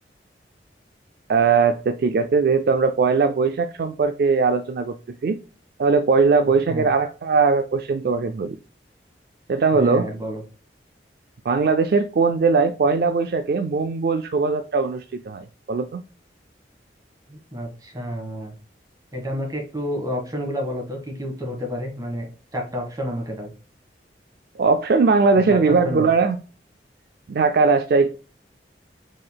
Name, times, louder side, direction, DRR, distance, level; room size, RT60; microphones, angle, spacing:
voice 1, 1.3-5.0 5.2-5.4 5.8-8.6 9.5-10.1 11.5-16.0 24.6-26.4 27.3-28.2, right 4 dB, 55° right, 0.3 m, -20 dB
voice 2, 9.7-10.4 17.3-18.5 19.1-22.3 22.5-23.5 25.5-26.1, equal, 20° right, 1.3 m, -30 dB
5.0 x 3.9 x 2.2 m
head